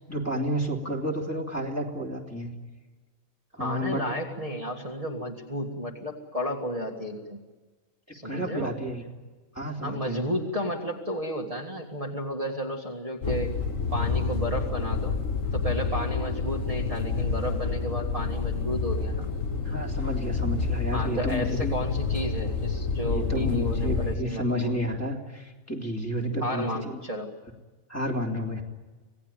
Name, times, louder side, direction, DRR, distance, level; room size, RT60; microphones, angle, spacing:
voice 1, 0.0-2.5 3.5-4.0 8.1-9.0 9.5-10.2 19.6-21.8 23.1-27.0 27.9-28.6, equal, 10° left, -2 dB, 3.1 m, -31 dB
voice 2, 3.6-7.4 8.1-8.8 9.8-13.5 13.9-15.2 15.5-19.3 20.9-24.7 26.4-27.3, equal, 25° right, -2 dB, 2.0 m, -32 dB
sound 1, 13.2-24.2, left 4 dB, 70° left, 2.0 m, -28 dB
26.5 x 18.0 x 9.1 m, 1.3 s
omnidirectional pair, 1.4 m